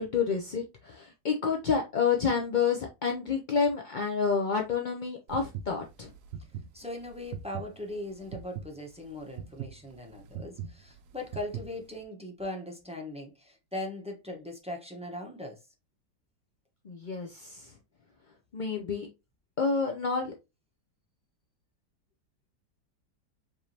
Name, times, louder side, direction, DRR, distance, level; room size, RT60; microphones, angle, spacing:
voice 1, 0.0-6.1 16.8-17.7 18.5-19.1 19.6-20.3, left 5 dB, 55° left, 0.5 m, -29 dB
sound 1, 5.3-12.0, right 8 dB, 65° right, 0.8 m, -41 dB
voice 2, 6.7-15.6, left 1 dB, 5° right, 0.7 m, -39 dB
4.9 x 3.6 x 2.8 m
omnidirectional pair, 1.8 m